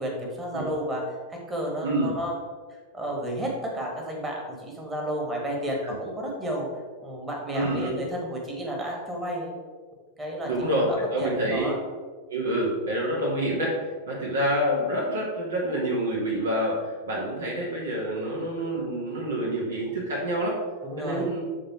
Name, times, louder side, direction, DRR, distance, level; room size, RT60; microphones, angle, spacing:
voice 1, 0.0-2.3 2.9-6.7 7.0-9.5 10.2-10.5 10.8-11.8 20.8-21.3, equal, 15° right, -1 dB, 1.6 m, -32 dB
voice 2, 1.8-2.1 5.8-6.0 7.5-8.0 10.4-11.7 12.3-20.6 21.0-21.4, right 1 dB, 70° right, -3 dB, 1.7 m, -27 dB
7.6 x 3.7 x 4.4 m, 1.5 s
figure-of-eight pair, 90°, 0 cm